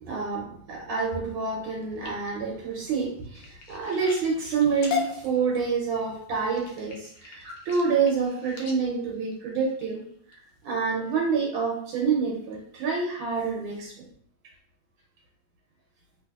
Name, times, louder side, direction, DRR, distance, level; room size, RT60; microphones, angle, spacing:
voice 1, 0.0-10.0 10.3-10.4 10.6-13.9, right 5 dB, 85° right, -3 dB, 1.5 m, -27 dB
sound 1, 1.6-10.3 10.9-11.3 11.7-12.1 12.5-12.6 12.9-13.0, left 6 dB, 75° left, 1.2 m, -39 dB
3.2 x 2.8 x 2.3 m, 0.66 s
omnidirectional pair, 2.3 m